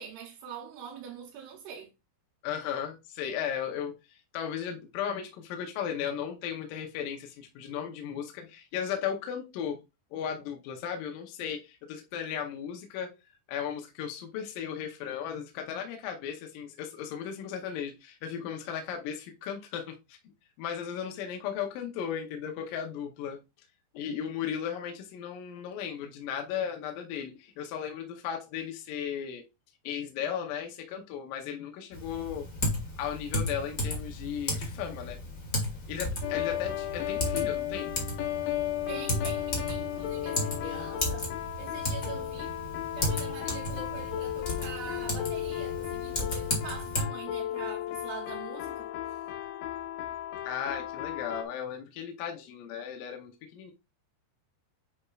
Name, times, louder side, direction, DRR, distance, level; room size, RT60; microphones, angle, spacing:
voice 1, 0.0-1.9 38.9-41.3 41.6-42.6 42.9-49.2, right 7 dB, 80° right, 2.8 m, -43 dB
voice 2, 2.4-9.8 10.1-13.1 13.5-20.2 20.6-23.4 23.9-29.4 29.8-32.5 33.0-35.2 35.9-37.9 50.4-53.7, left 8 dB, 75° left, 2.2 m, -36 dB
Typing, 31.9-47.0, left 1 dB, 50° left, 0.9 m, -34 dB
sound 1, 36.2-51.4, left 12 dB, 90° left, 2.9 m, -35 dB
9.7 x 4.3 x 2.3 m
omnidirectional pair, 4.8 m